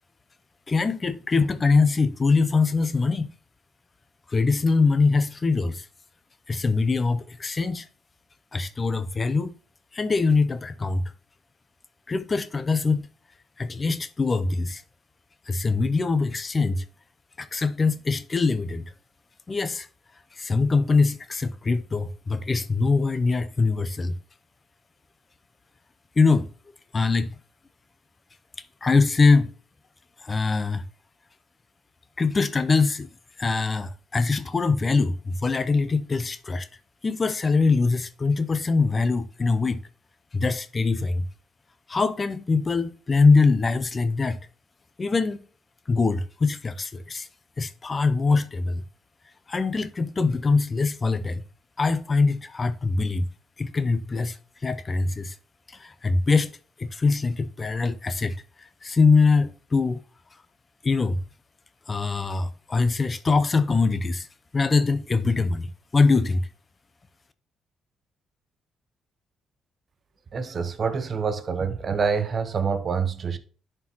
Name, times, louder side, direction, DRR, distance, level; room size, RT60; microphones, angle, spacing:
voice 1, 0.7-3.3 4.3-5.9 6.5-7.9 8.5-9.6 9.9-11.1 12.1-13.1 13.6-14.8 15.5-16.8 17.4-18.9 19.5-19.9 20.3-24.2 26.2-26.5 26.9-27.3 28.8-29.5 30.2-30.9 32.2-33.1 33.4-36.7 37.0-39.8 40.3-41.3 41.9-44.4 45.0-45.4 45.9-47.3 47.6-48.8 49.5-51.4 51.8-53.3 53.6-55.4 55.7-56.5 56.8-60.0 60.8-61.2 61.9-64.3 64.5-66.5, left 4 dB, 30° left, 0.6 m, -23 dB
voice 2, 70.3-73.4, right 5 dB, 45° right, 0.8 m, -26 dB
11.0 x 4.5 x 2.9 m
cardioid pair, 90°, 0 cm